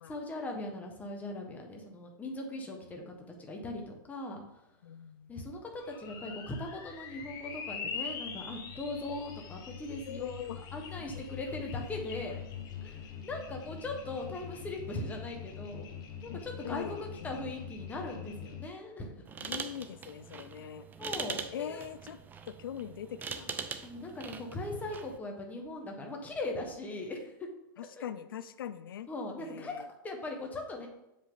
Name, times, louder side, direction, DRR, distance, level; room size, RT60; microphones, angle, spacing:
voice 1, 0.1-4.4 5.3-10.4 10.7-12.4 12.8-15.8 16.2-19.1 21.0-21.8 23.8-27.3 28.0-28.1 29.1-30.9, left 2 dB, 15° left, 2 dB, 1.3 m, -39 dB
voice 2, 4.8-5.3 8.9-9.0 10.1-10.6 16.3-17.5 19.4-20.9 21.5-22.2 22.5-23.6 24.7-24.9 27.8-29.1 29.4-29.9, left 9 dB, 85° left, 13 dB, 0.4 m, -42 dB
sound 1, 5.8-18.7, left 7 dB, 35° left, 1.1 m, -43 dB
sound 2, 19.3-25.2, right 6 dB, 15° right, 0.5 m, -42 dB
7.3 x 5.1 x 3.9 m, 0.90 s
hypercardioid pair, 135°, 11 cm